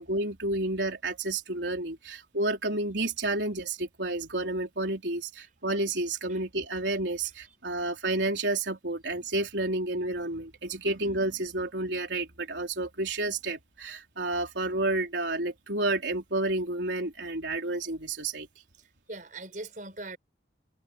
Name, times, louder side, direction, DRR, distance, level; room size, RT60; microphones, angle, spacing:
voice 1, 0.0-18.5, right 2 dB, 80° right, 3.8 m, -30 dB
voice 2, 18.8-20.2, right 2 dB, 45° right, 5.9 m, -41 dB
head